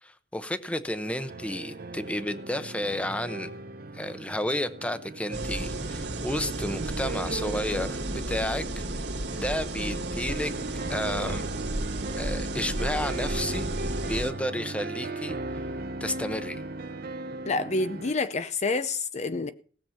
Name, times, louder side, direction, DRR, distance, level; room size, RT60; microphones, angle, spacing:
voice 1, 0.0-3.5 3.9-9.1 9.3-10.5 10.9-11.5 12.2-13.7 14.0-15.4 16.0-16.6, left 1 dB, 5° left, 0.8 m, -32 dB
sound 1, 1.0-18.1, right 2 dB, 55° right, 0.9 m, -37 dB
sound 2, 5.3-14.3, right 1 dB, 75° right, 1.9 m, -33 dB
voice 2, 17.5-19.5, left 3 dB, 40° left, 0.6 m, -28 dB
18.0 x 7.2 x 5.7 m
head